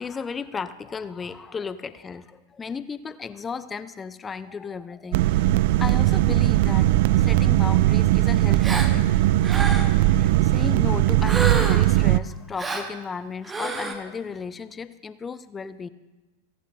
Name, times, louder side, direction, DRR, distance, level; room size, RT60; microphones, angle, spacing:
voice 1, 0.0-9.3 9.7-15.9, left 5 dB, 15° left, 14 dB, 0.5 m, -35 dB
sound 1, 5.1-12.2, right 15 dB, 50° right, 0.3 m, -19 dB
Gasp, 8.6-8.9 9.4-10.0 11.2-11.9 12.6-12.9 13.4-13.9, right 3 dB, 15° right, 1.2 m, -28 dB
28.5 x 11.0 x 2.5 m, 1.1 s
figure-of-eight pair, 90°, 0 cm